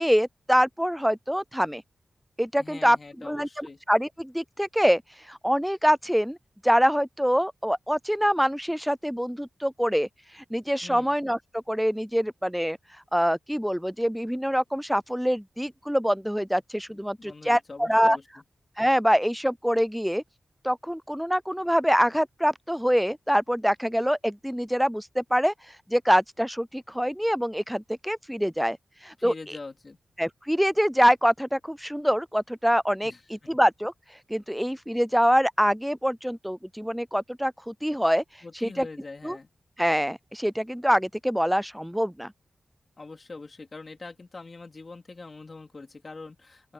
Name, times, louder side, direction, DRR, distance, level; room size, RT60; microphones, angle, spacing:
voice 1, 0.0-1.8 2.4-5.0 5.3-6.4 6.6-10.1 10.3-12.8 13.1-18.2 18.8-20.2 20.6-25.5 25.9-28.8 29.0-29.6 30.2-33.9 34.3-38.2 38.6-38.9 39.2-39.4 39.8-42.3, equal, ahead, 0.4 m, -25 dB
voice 2, 2.6-3.8 10.8-11.1 16.9-18.2 29.2-30.0 33.0-33.5 38.4-39.5 43.0-46.7, left 3 dB, 45° left, 3.4 m, -43 dB
open air
wide cardioid pair, 80°, 0 cm